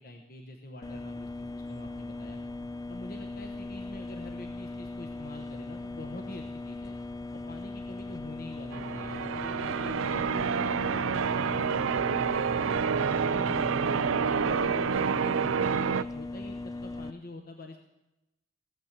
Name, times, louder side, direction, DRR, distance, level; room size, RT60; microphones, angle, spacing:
voice 1, 0.0-2.4 2.9-7.0 7.3-13.7 14.1-17.8, left 2 dB, 45° left, 3 dB, 1.1 m, -46 dB
sound 1, 0.8-17.1, left 2 dB, 15° left, 0.4 m, -39 dB
Church bell, 8.7-16.0, right 6 dB, 80° right, 0.5 m, -28 dB
17.0 x 7.3 x 8.2 m, 0.94 s
head